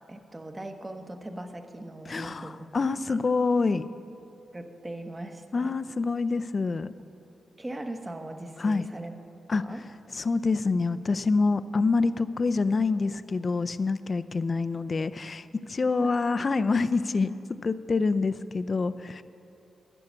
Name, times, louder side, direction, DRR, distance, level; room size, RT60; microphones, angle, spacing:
voice 1, 0.0-2.6 3.1-3.2 4.5-5.8 7.6-9.1 9.6-9.8 15.9-16.1, right 1 dB, 25° right, 6 dB, 1.1 m, -39 dB
voice 2, 2.1-3.9 5.5-6.9 8.6-8.9 9.5-9.6 10.1-17.4 17.6-19.2, left 4 dB, 45° left, 13 dB, 0.4 m, -26 dB
11.5 x 7.0 x 8.3 m, 2.8 s
cardioid pair, 65°, 0 cm